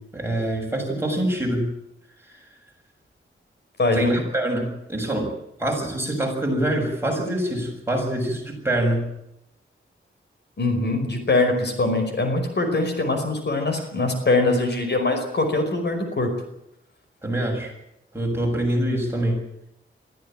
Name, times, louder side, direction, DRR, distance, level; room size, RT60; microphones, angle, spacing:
voice 1, 0.1-1.7 2.3-2.4 3.9-5.3 5.6-9.1 17.2-17.7 18.1-19.4, right 1 dB, 10° right, 0 dB, 7.0 m, -25 dB
voice 2, 3.8-4.1 10.6-16.3, left 2 dB, 55° left, 6 dB, 5.2 m, -22 dB
23.0 x 14.5 x 8.9 m, 0.82 s
wide cardioid pair, 125°, 21 cm